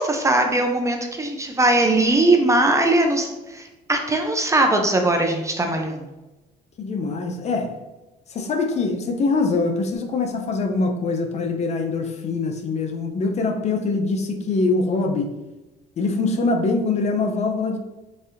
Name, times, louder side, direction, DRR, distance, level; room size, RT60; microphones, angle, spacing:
voice 1, 0.0-6.1, right 2 dB, 20° right, 3 dB, 0.4 m, -20 dB
voice 2, 6.8-7.7 8.3-15.3 16.0-17.8, left 3 dB, 40° left, 5 dB, 0.4 m, -23 dB
4.0 x 2.6 x 2.5 m, 1.1 s
cardioid pair, 110°, 17 cm